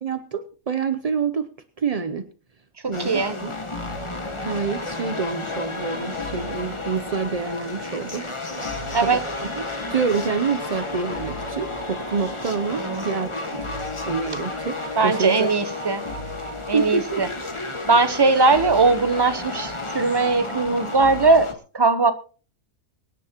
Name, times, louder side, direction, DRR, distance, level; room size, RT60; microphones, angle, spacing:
voice 1, 0.0-1.5 1.8-2.2 2.9-3.5 4.4-8.3 9.0-9.6 9.9-13.4 14.1-15.5 16.7-17.2, right 5 dB, 50° right, 0.4 m, -27 dB
voice 2, 2.8-3.4 8.9-9.2 12.7-13.1 15.0-16.0 16.7-17.3 17.9-22.1, right 3 dB, 20° right, 0.7 m, -20 dB
sound 1, 2.9-21.5, left 2 dB, 20° left, 1.4 m, -32 dB
23.5 x 10.0 x 2.9 m
omnidirectional pair, 1.5 m